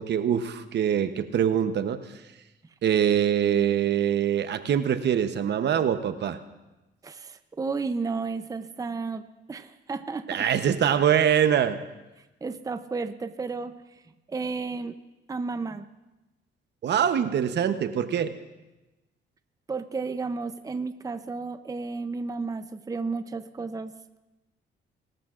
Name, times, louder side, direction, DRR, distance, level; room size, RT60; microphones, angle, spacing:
voice 1, 0.0-2.0 2.8-6.4 10.3-11.8 16.8-18.3, right 9 dB, 60° right, 10 dB, 0.9 m, -24 dB
voice 2, 7.0-9.2 9.5-10.4 12.4-14.0 14.3-14.9 15.3-15.9 19.7-23.9, right 4 dB, 15° right, 10 dB, 0.6 m, -32 dB
23.0 x 13.5 x 2.5 m, 1.0 s
cardioid pair, 90°, 20 cm